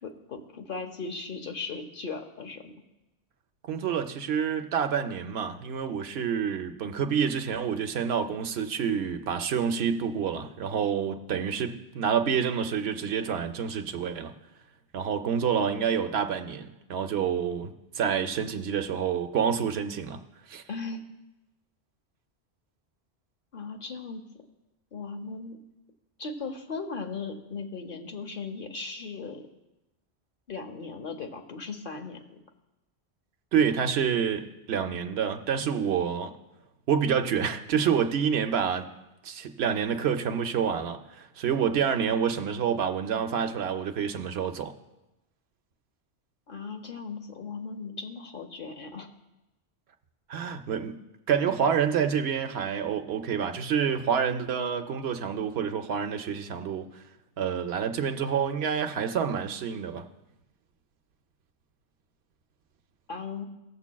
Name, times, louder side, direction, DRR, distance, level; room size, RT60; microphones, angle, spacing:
voice 1, 0.0-2.7 20.7-21.1 23.5-24.2 24.9-25.6 26.2-29.4 30.5-32.4 46.5-49.1 63.1-63.5, left 4 dB, 55° left, 5 dB, 0.9 m, -37 dB
voice 2, 3.7-14.3 14.9-20.2 20.5-20.6 33.5-36.3 36.9-38.9 39.2-44.7 50.3-51.0 51.3-57.0 57.4-60.0, right 7 dB, 70° right, 7 dB, 0.9 m, -28 dB
18.5 x 7.1 x 2.3 m, 0.99 s
omnidirectional pair, 1.1 m